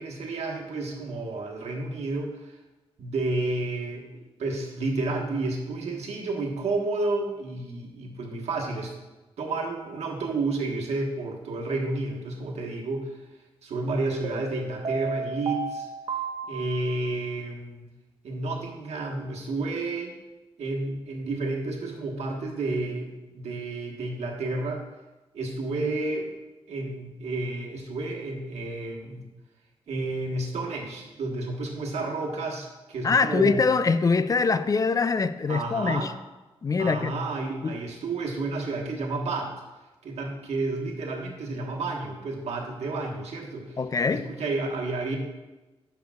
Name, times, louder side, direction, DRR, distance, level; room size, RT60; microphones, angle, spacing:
voice 1, 0.0-2.5 3.0-8.9 9.4-13.2 13.6-15.9 16.5-17.9 18.2-20.1 20.6-24.8 25.3-26.3 26.7-29.2 29.9-33.7 35.5-36.1 36.8-39.5 40.0-43.8 44.1-45.2, right 2 dB, 85° right, 0 dB, 1.3 m, -31 dB
sound 1, 9.8-10.1 14.2-17.3, right 4 dB, 50° right, 0.8 m, -34 dB
voice 2, 33.0-36.1 36.6-37.1 37.6-37.8 43.8-44.3, left 4 dB, 35° left, 12 dB, 0.3 m, -23 dB
10.0 x 6.8 x 2.3 m, 1.1 s
wide cardioid pair, 105°, 11 cm